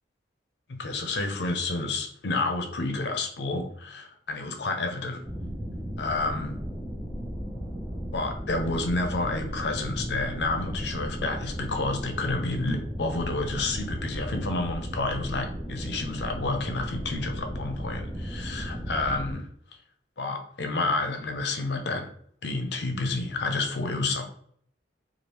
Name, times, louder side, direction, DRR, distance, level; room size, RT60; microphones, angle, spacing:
voice 1, 0.7-5.2 6.0-6.6 8.1-19.5 20.2-22.1 22.4-24.2, left 3 dB, 70° left, 5 dB, 0.5 m, -30 dB
sound 1, 5.2-19.3, equal, 10° right, 0.6 m, -35 dB
3.2 x 2.4 x 2.9 m, 0.62 s
head